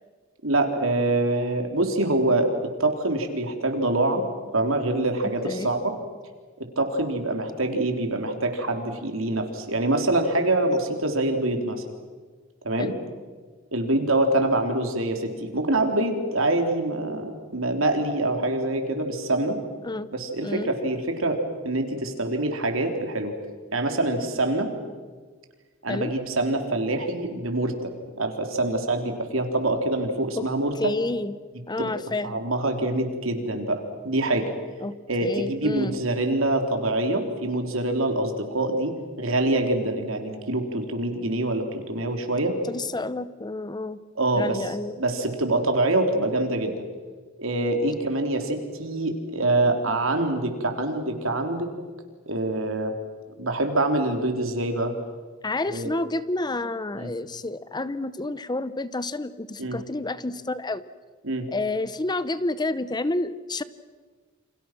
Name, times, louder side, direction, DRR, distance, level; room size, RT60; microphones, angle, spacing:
voice 1, 0.4-2.5 2.8-4.2 4.5-5.9 6.6-11.8 12.6-12.9 13.7-19.6 20.1-23.3 23.7-24.7 25.8-27.9 28.2-30.9 31.8-31.9 32.2-34.5 35.1-42.6 44.2-44.6 45.0-46.7 47.4-51.7 52.3-52.9 53.4-54.9 55.7-55.9 57.0-57.1 59.6-59.8 61.2-61.5, right 2 dB, 80° right, 4 dB, 3.7 m, -25 dB
voice 2, 5.2-5.7 12.8-13.0 19.8-20.1 20.4-20.7 25.9-26.1 30.4-30.5 30.8-31.3 31.7-32.4 34.8-36.0 42.6-44.0 44.3-45.0 55.4-60.8 61.5-63.6, left 2 dB, 20° left, 15 dB, 0.8 m, -29 dB
29.0 x 27.0 x 6.1 m, 1.5 s
head